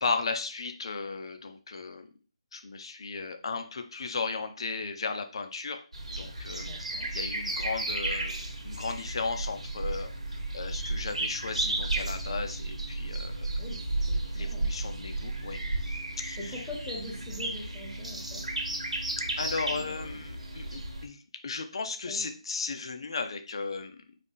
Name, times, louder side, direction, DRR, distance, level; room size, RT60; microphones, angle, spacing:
voice 1, 0.0-2.1 2.5-5.8 6.2-6.7 7.1-13.6 14.3-16.6 19.4-24.0, left 4 dB, 50° left, 7 dB, 0.6 m, -35 dB
sound 1, 5.9-21.1, right 2 dB, 85° right, 1.4 m, -33 dB
voice 2, 6.6-7.1 13.6-14.7 16.4-18.4 19.4-20.2 22.1-22.2, left 2 dB, 10° left, -2 dB, 1.1 m, -42 dB
4.1 x 2.8 x 3.6 m, 0.36 s
figure-of-eight pair, 165°, 4 cm